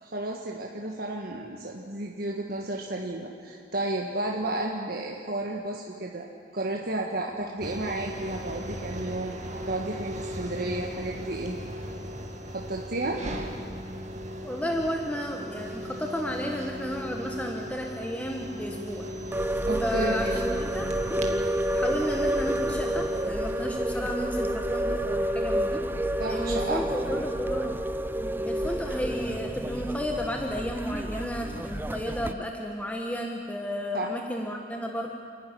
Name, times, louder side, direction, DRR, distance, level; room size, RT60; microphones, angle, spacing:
voice 1, 0.0-6.3 6.5-11.6 12.5-13.2 19.7-20.3 26.2-26.8 27.1-27.2 33.9-34.1, right 2 dB, 60° right, 0 dB, 1.6 m, -32 dB
sound 1, 7.6-23.2, equal, 40° right, 2.0 m, -38 dB
voice 2, 14.4-19.1 19.8-20.9 21.7-25.8 26.3-27.8 28.4-35.1, equal, 10° left, 1 dB, 1.4 m, -32 dB
sound 2, 19.3-32.3, right 1 dB, 10° right, 0.6 m, -29 dB
28.5 x 11.0 x 9.9 m, 2.3 s
head